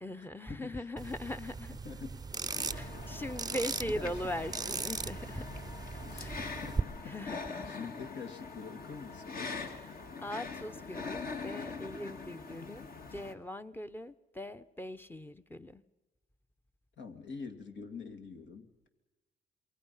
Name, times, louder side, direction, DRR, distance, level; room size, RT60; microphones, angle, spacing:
voice 1, 0.0-1.8 2.7-5.5 6.1-6.4 7.1-7.9 9.6-15.8, left 1 dB, 10° left, 10 dB, 0.9 m, -40 dB
sound 1, 1.0-6.8, right 4 dB, 20° right, 0.7 m, -38 dB
voice 2, 1.8-2.2 3.9-4.2 6.0-7.2 7.8-9.6 17.0-18.9, left 5 dB, 65° left, 6 dB, 2.5 m, -45 dB
sound 2, 2.5-13.3, left 4 dB, 50° left, 2.1 m, -43 dB
27.5 x 22.5 x 5.7 m, 1.2 s
cardioid pair, 90°, 20 cm